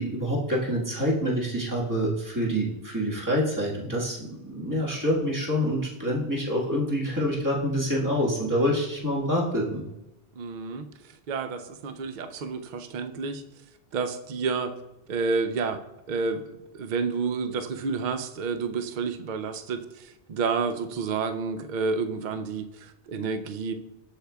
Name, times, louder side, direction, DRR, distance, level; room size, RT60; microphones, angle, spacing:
voice 1, 0.0-9.8, equal, 15° right, -4 dB, 1.5 m, -26 dB
voice 2, 10.4-13.4 13.9-14.7 15.1-15.8 16.1-23.7, right 4 dB, 50° right, 8 dB, 0.6 m, -30 dB
13.0 x 4.6 x 2.3 m, 0.94 s
omnidirectional pair, 1.2 m